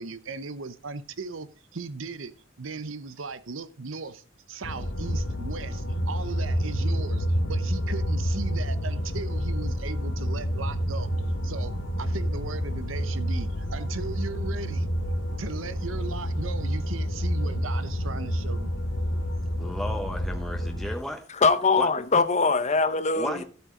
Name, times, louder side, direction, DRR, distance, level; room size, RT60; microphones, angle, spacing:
voice 1, 0.0-2.3 2.6-11.1 11.4-14.9 15.4-18.7, right 4 dB, 90° right, 0.8 m, -37 dB
sound 1, 4.6-20.9, equal, 90° left, 1.6 m, -29 dB
voice 2, 19.6-21.2 21.7-21.9 23.1-23.4, left 1 dB, ahead, 1.1 m, -33 dB
voice 3, 21.4-23.4, left 4 dB, 35° left, 0.8 m, -22 dB
13.0 x 8.1 x 3.8 m
head